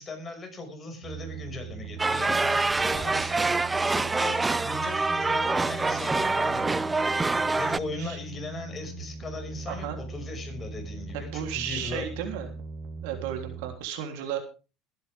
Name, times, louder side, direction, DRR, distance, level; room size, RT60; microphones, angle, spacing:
voice 1, 0.0-3.5 3.9-6.8 7.3-12.0, left 2 dB, 25° left, 4 dB, 5.9 m, -38 dB
sound 1, 1.0-13.8, right 4 dB, 60° right, 3.6 m, -40 dB
sound 2, 2.0-7.8, right 3 dB, 15° right, 0.6 m, -26 dB
voice 2, 9.7-10.0 11.1-12.5 13.0-14.4, right 9 dB, 75° right, 5 dB, 3.3 m, -34 dB
20.5 x 10.0 x 3.6 m, 0.32 s
supercardioid pair, 105°, 0 cm